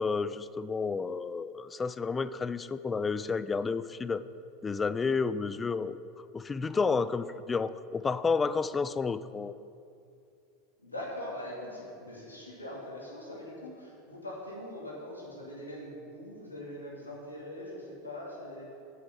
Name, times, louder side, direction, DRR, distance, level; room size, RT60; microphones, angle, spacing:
voice 1, 0.0-4.2 4.6-6.0 6.3-9.5, left 4 dB, 20° left, 14 dB, 0.3 m, -31 dB
voice 2, 10.8-18.7, left 1 dB, 85° left, -4 dB, 2.2 m, -42 dB
7.9 x 6.1 x 7.2 m, 2.5 s
figure-of-eight pair, 80°, 0 cm